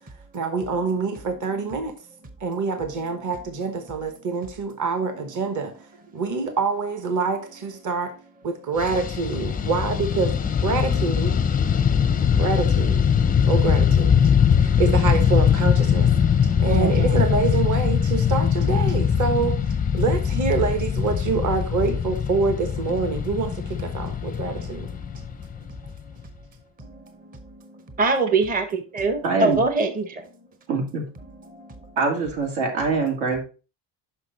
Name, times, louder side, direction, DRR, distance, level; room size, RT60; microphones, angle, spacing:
voice 1, 0.3-2.0 2.4-5.7 6.1-8.1 8.4-10.3 10.6-11.4 12.4-13.0 13.4-14.3 14.6-16.1 16.6-19.6 19.9-24.9, right 4 dB, 40° right, 1.2 m, -26 dB
Fixed-wing aircraft airplane, 8.8-26.2, left 7 dB, 20° left, 0.5 m, -21 dB
voice 2, 16.6-17.0 28.0-30.1, right 3 dB, 20° right, 0.7 m, -22 dB
voice 3, 29.2-29.6 30.7-31.0 32.0-33.4, right 4 dB, 80° right, 2.6 m, -24 dB
6.1 x 5.7 x 4.0 m
cardioid pair, 125°, 46 cm